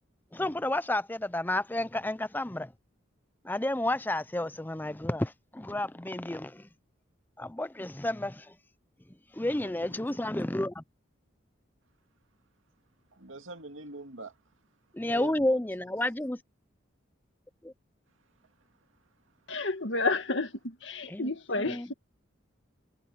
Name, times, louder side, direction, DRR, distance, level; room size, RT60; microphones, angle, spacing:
voice 1, 0.3-2.7 3.4-6.7 7.4-8.5 9.3-10.8 14.9-16.4 17.6-17.7 21.1-21.2 21.7-21.8, left 1 dB, 10° left, 0.5 m, -31 dB
voice 2, 9.6-10.2 13.1-14.4 15.1-15.6, right 2 dB, 85° right, 2.3 m, -44 dB
voice 3, 19.5-21.9, left 3 dB, 70° left, 1.9 m, -31 dB
head